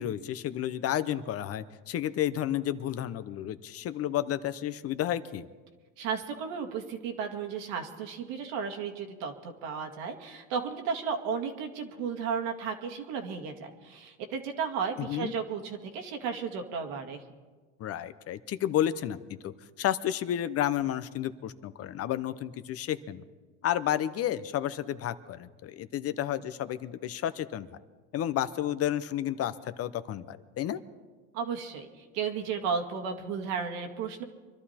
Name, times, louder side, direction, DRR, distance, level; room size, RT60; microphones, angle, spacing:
voice 1, 0.0-5.5 15.0-15.3 17.8-19.5 19.8-23.2 23.6-27.7 28.1-30.8, left 11 dB, 40° left, 13 dB, 0.7 m, -31 dB
voice 2, 6.0-17.2 31.3-34.2, right 6 dB, 70° right, 4 dB, 2.1 m, -34 dB
24.5 x 12.5 x 4.3 m, 1.3 s
supercardioid pair, 110°, 35 cm